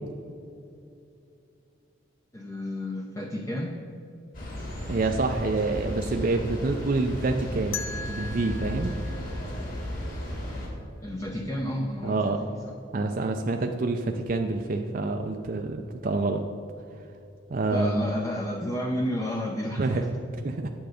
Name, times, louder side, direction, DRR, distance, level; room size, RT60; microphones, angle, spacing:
voice 1, 2.3-3.7 11.0-12.3 12.7-12.8 17.7-20.1, left 1 dB, 15° left, 1 dB, 0.6 m, -31 dB
sound 1, 4.3-10.7, equal, 45° left, 2.4 m, -35 dB
voice 2, 4.9-8.9 12.0-12.4 12.9-16.4 17.5-18.1 19.8-20.1 20.4-20.7, right 3 dB, 45° right, 3 dB, 0.5 m, -27 dB
sound 2, 7.7-10.6, left 5 dB, 85° left, 0.6 m, -40 dB
9.1 x 7.7 x 5.0 m, 2.7 s
head